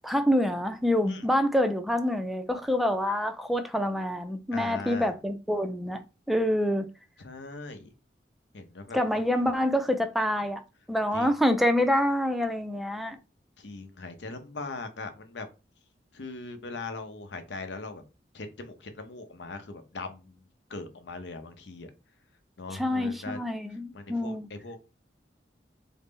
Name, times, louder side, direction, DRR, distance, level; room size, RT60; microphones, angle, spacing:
voice 1, 0.0-6.0 6.3-6.9 8.9-10.6 10.9-13.2 22.7-24.5, left 1 dB, ahead, 0.3 m, -26 dB
voice 2, 4.5-5.1 7.2-7.9 8.5-9.0 9.3-9.5 11.1-11.3 13.6-15.5 16.1-18.0 18.3-20.4 20.7-21.9 22.6-23.4 23.9-24.8, left 3 dB, 85° left, 0.7 m, -40 dB
3.8 x 2.0 x 3.6 m
head